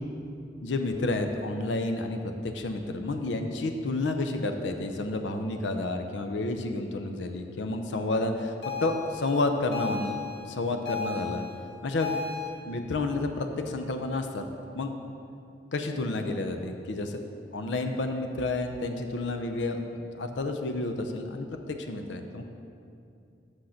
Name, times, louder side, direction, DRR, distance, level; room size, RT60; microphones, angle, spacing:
voice 1, 0.6-8.5 8.8-11.5 11.8-12.2 12.7-14.4 14.8-14.9 15.7-17.2 17.5-22.4, left 2 dB, 85° left, 6 dB, 0.6 m, -30 dB
sound 1, 8.6-12.5, left 5 dB, 65° left, 1.3 m, -35 dB
6.4 x 6.3 x 5.7 m, 2.5 s
head